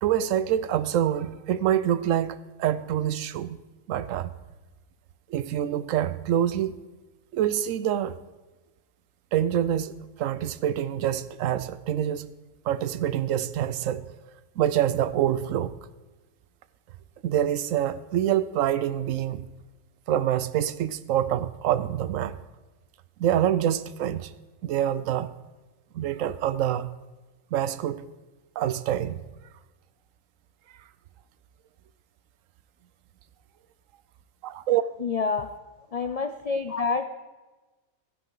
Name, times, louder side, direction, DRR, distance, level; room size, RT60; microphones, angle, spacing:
voice 1, 0.0-3.6 3.9-4.3 5.3-6.8 7.3-8.2 9.3-12.2 12.6-14.0 14.6-15.7 17.2-19.4 20.1-22.4 23.2-24.3 24.6-25.3 25.9-26.9 27.5-28.0 28.6-29.2 34.4-34.8, right 11 dB, 85° right, 1.0 m, -26 dB
voice 2, 35.0-35.5 35.9-37.1, left 4 dB, 75° left, 0.3 m, -27 dB
14.0 x 10.0 x 3.9 m
omnidirectional pair, 1.3 m